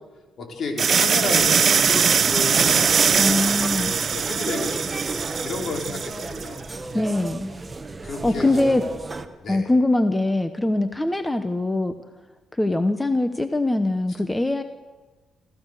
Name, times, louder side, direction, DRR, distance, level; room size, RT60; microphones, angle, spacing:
voice 1, 0.4-2.9 3.3-3.5 4.1-6.6 8.0-8.7 9.4-9.7, left 3 dB, 55° left, 1 dB, 4.4 m, -31 dB
sound 1, 0.8-6.5, right 6 dB, 45° right, 0.9 m, -21 dB
sound 2, 2.5-9.3, right 3 dB, 20° right, 1.5 m, -33 dB
voice 2, 3.2-3.9 6.9-7.5 8.0-8.8 9.5-12.0 12.5-14.6, left 2 dB, 10° left, 9 dB, 1.0 m, -22 dB
26.5 x 15.0 x 6.7 m, 1.3 s
cardioid pair, 90°, 0 cm